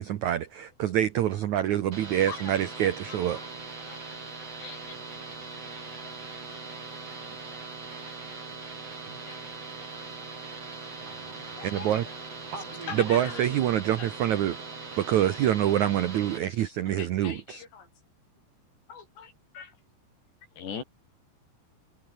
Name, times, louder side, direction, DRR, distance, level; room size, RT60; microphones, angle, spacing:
voice 1, 0.0-3.4 11.6-12.0 12.9-14.6 15.0-17.6, right 11 dB, 90° right, 1.6 m, -26 dB
sound 1, 1.9-16.4, right 4 dB, 35° right, 6.4 m, -41 dB
voice 2, 2.3-3.5 3.8-4.0 4.6-5.0 6.5-6.6 9.3-9.4 11.6-12.0 12.9-13.4 14.0-14.1 17.0-17.9 18.9-19.7 20.6-20.8, left 6 dB, 75° left, 6.7 m, -42 dB
voice 3, 11.0-11.6 12.5-13.6, right 4 dB, 65° right, 9.0 m, -43 dB
omnidirectional pair, 5.0 m